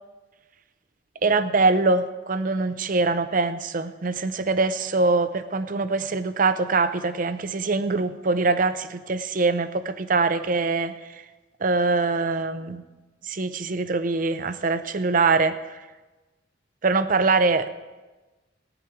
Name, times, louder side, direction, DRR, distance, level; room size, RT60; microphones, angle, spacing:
voice 1, 1.2-11.2 11.6-12.8 13.2-15.9 16.8-17.8, right 3 dB, 40° right, 12 dB, 0.6 m, -23 dB
15.5 x 9.8 x 4.5 m, 1.2 s
head